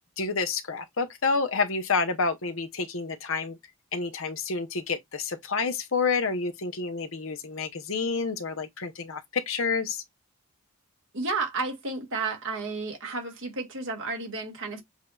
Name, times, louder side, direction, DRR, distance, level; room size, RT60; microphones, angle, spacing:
voice 1, 0.2-3.6 3.9-10.0, left 4 dB, 60° left, 0.8 m, -29 dB
voice 2, 11.1-14.8, right 3 dB, 60° right, 1.8 m, -32 dB
7.2 x 2.7 x 2.3 m
head